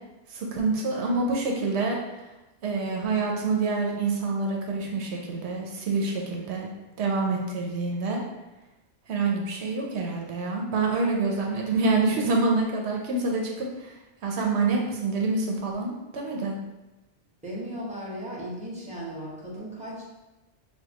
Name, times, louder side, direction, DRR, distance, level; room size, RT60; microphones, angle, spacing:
voice 1, 0.3-2.0 2.6-6.7 7.0-8.2 9.1-14.0 14.2-16.6, right 3 dB, 80° right, 0 dB, 1.0 m, -27 dB
voice 2, 17.4-20.0, equal, 5° right, -7 dB, 1.2 m, -36 dB
6.6 x 2.3 x 2.9 m, 1.0 s
omnidirectional pair, 1.1 m